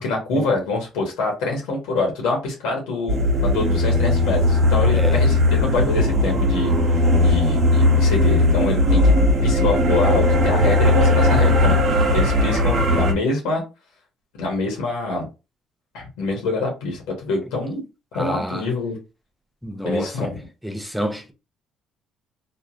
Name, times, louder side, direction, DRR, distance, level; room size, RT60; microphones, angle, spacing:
voice 1, 0.0-6.7 7.2-9.0 9.4-13.6 14.4-15.3 15.9-17.8 18.1-19.0 19.8-20.3, left 3 dB, 90° left, 1.1 m, -25 dB
sound 1, 3.1-13.1, left 1 dB, 60° right, 1.3 m, -17 dB
voice 2, 18.1-18.6 19.6-20.3 20.6-21.3, equal, ahead, 0.6 m, -28 dB
3.0 x 2.4 x 2.5 m
supercardioid pair, 80°, 0 cm